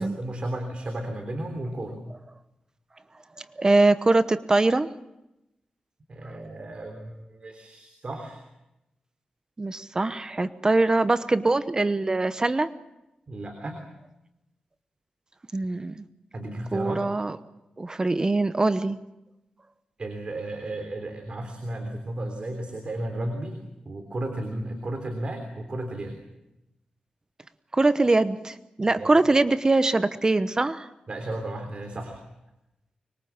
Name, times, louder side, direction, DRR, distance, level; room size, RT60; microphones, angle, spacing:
voice 1, 0.0-2.0 6.1-8.4 13.3-13.8 16.3-17.1 20.0-23.6 23.9-26.2 29.0-29.1 31.1-32.2, right 1 dB, 45° right, 4 dB, 3.5 m, -34 dB
voice 2, 3.4-4.9 6.2-6.3 9.6-12.7 15.5-16.0 16.7-17.4 17.8-19.0 27.7-30.9, right 2 dB, 25° right, 12 dB, 1.0 m, -23 dB
25.0 x 22.5 x 7.3 m, 0.91 s
wide cardioid pair, 105°, 3 cm